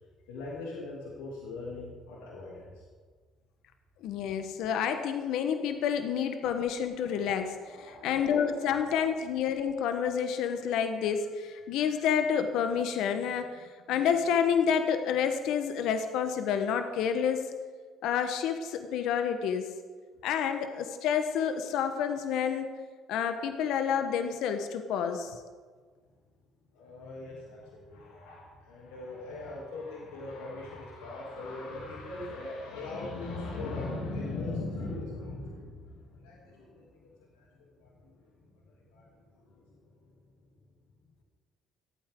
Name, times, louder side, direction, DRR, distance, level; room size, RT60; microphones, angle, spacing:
voice 1, 0.3-2.8 7.0-8.8 26.7-40.0, left 2 dB, 90° left, -4 dB, 2.8 m, -41 dB
voice 2, 4.0-17.5 18.0-19.7 20.2-22.7 23.1-25.4, left 7 dB, 75° left, 7 dB, 1.1 m, -29 dB
25.5 x 9.1 x 3.7 m, 1.5 s
supercardioid pair, 70°, 0 cm